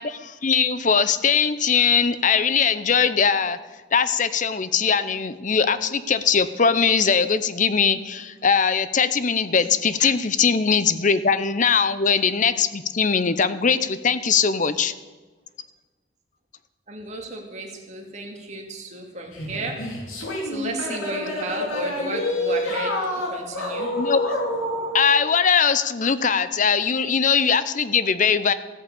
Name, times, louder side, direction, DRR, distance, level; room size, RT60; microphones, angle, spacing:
voice 1, 0.0-3.6 3.9-14.9 24.0-24.3 24.9-28.5, left 6 dB, 40° left, 13 dB, 0.7 m, -21 dB
voice 2, 16.9-19.9 20.4-23.9, right 2 dB, 35° right, 1 dB, 2.3 m, -33 dB
sound 1, 19.3-25.0, left 1 dB, 90° left, 3.1 m, -27 dB
14.0 x 8.7 x 8.5 m, 1.3 s
head